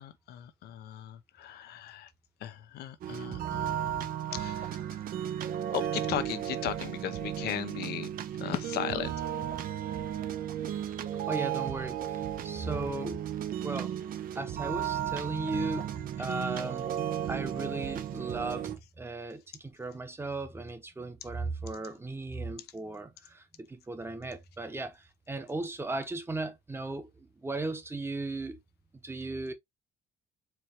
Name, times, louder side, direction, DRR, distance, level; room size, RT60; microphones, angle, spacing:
voice 1, 0.0-2.1 2.4-4.8 5.7-8.1 8.4-9.1, left 12 dB, 70° left, 0.7 m, -37 dB
sound 1, 3.0-18.8, right 10 dB, 55° right, 0.7 m, -34 dB
voice 2, 11.3-13.2 13.6-13.9 14.3-15.9 16.2-16.9 17.3-28.6 28.9-29.5, right 2 dB, 15° right, 1.0 m, -36 dB
4.5 x 3.1 x 2.9 m
cardioid pair, 110°, 17 cm